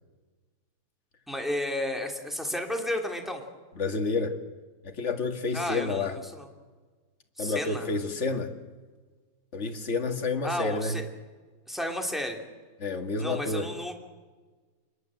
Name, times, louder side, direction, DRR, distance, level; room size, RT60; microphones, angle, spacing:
voice 1, 1.3-3.4 5.5-6.5 7.4-7.9 10.4-11.1 11.7-12.4 13.2-13.9, left 1 dB, ahead, 2 dB, 3.1 m, -32 dB
voice 2, 3.8-4.4 4.8-6.1 7.4-8.5 9.5-11.0 12.8-13.7, left 3 dB, 40° left, 5 dB, 2.2 m, -29 dB
26.5 x 22.0 x 7.8 m, 1.4 s
omnidirectional pair, 1.9 m